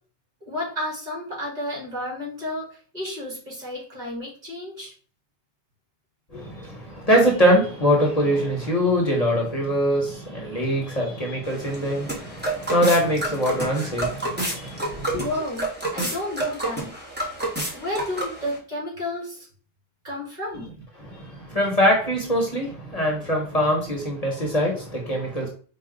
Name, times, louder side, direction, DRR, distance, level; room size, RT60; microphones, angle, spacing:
voice 1, 0.5-4.9 15.2-15.7 15.9-16.9 17.7-19.5 20.0-20.7, left 1 dB, 45° right, -4 dB, 2.1 m, -31 dB
voice 2, 6.3-15.3 21.0-25.5, equal, 40° left, -1 dB, 1.0 m, -23 dB
sound 1, 11.4-18.6, right 2 dB, 10° right, 1.1 m, -30 dB
4.6 x 2.4 x 3.7 m, 0.42 s
omnidirectional pair, 1.0 m